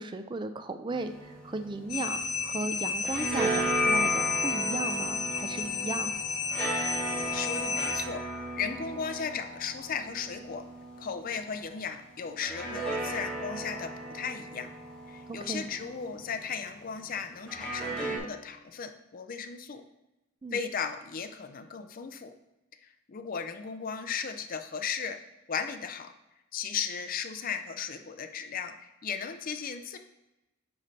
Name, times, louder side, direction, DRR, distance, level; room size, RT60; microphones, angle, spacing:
voice 1, 0.0-6.1 15.3-15.7 20.4-20.6, right 3 dB, 20° right, 8 dB, 0.3 m, -36 dB
sound 1, 0.9-2.6 2.9-11.6 12.4-16.5 17.5-18.2, equal, 5° left, 1.2 m, -34 dB
sound 2, 1.9-8.0, left 5 dB, 90° left, 0.6 m, -32 dB
voice 2, 7.2-8.2 8.6-10.6 11.0-14.7 15.1-19.8 20.5-22.3 22.8-25.2 25.5-26.1 26.5-30.0, left 6 dB, 40° left, 8 dB, 0.4 m, -36 dB
9.2 x 3.2 x 4.1 m, 0.97 s
head